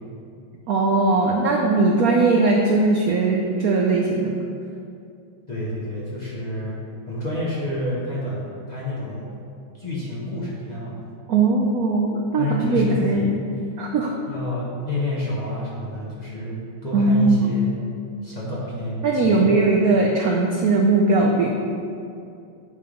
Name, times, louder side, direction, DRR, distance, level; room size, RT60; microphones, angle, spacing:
voice 1, 0.7-4.3 11.3-13.4 13.8-14.1 16.9-17.6 19.0-21.5, right 3 dB, 75° right, 0 dB, 0.8 m, -19 dB
voice 2, 5.5-6.8 7.1-9.3 9.7-10.9 12.4-13.3 14.3-17.7 18.2-19.6, left 1 dB, 25° left, -7 dB, 1.1 m, -29 dB
8.8 x 3.6 x 5.0 m, 2.5 s
omnidirectional pair, 2.2 m